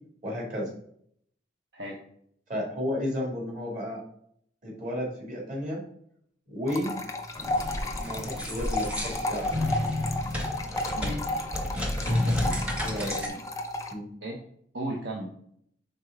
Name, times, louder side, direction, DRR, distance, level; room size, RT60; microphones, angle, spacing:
voice 1, 0.2-0.7 2.5-4.0 4.6-5.8 6.5-7.0 8.0-9.5 12.8-13.2 13.9-14.1, left 1 dB, 45° right, -3 dB, 2.4 m, -32 dB
sound 1, 6.7-13.9, left 2 dB, 15° left, 0.6 m, -33 dB
sound 2, 7.4-13.3, left 1 dB, 5° right, 0.9 m, -30 dB
voice 2, 11.0-11.4 12.1-12.5 13.0-13.4 14.2-14.4 14.7-15.3, right 1 dB, 65° right, -1 dB, 0.9 m, -36 dB
5.3 x 3.7 x 4.8 m, 0.67 s
head